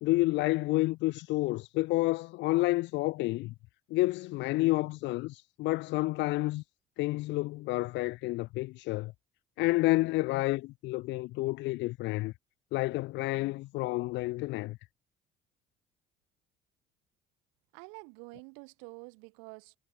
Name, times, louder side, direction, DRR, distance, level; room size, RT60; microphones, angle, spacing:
voice 1, 0.0-3.5 3.9-6.6 7.0-9.1 9.6-12.3 12.7-14.8, left 20 dB, 70° left, 0.7 m, -29 dB
voice 2, 17.7-19.8, right 40 dB or more, 85° right, 5.4 m, -48 dB
supercardioid pair, 80°, 19 cm